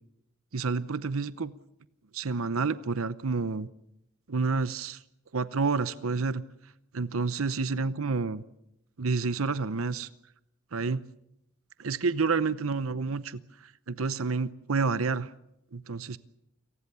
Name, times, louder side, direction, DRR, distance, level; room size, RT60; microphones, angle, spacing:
voice 1, 0.5-1.5 2.1-3.7 4.3-5.0 5.3-6.4 6.9-8.4 9.0-10.1 10.7-11.0 11.8-15.3 15.7-16.2, right 4 dB, 75° right, 15 dB, 0.8 m, -29 dB
28.0 x 19.0 x 6.9 m, 0.81 s
head